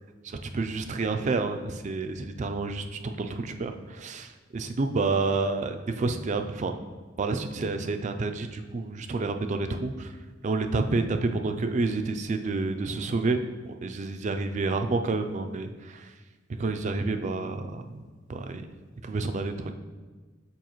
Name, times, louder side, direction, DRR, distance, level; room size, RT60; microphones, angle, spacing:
voice 1, 0.5-6.7 7.2-10.1 10.4-16.1 16.6-18.0 18.3-18.7 19.0-19.7, right 3 dB, 40° right, 7 dB, 0.4 m, -29 dB
7.0 x 4.7 x 3.0 m, 1.4 s
head